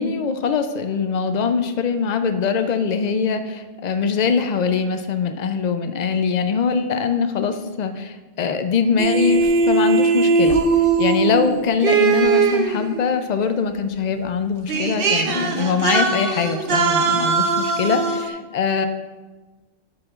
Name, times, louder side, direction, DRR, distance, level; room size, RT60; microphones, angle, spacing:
voice 1, 0.0-10.6 11.0-18.9, left 5 dB, 80° left, 8 dB, 0.3 m, -22 dB
sound 1, 9.0-13.1 14.3-14.4 14.7-18.3, right 4 dB, 55° right, 0.8 m, -20 dB
9.1 x 7.8 x 2.4 m, 1.3 s
omnidirectional pair, 1.3 m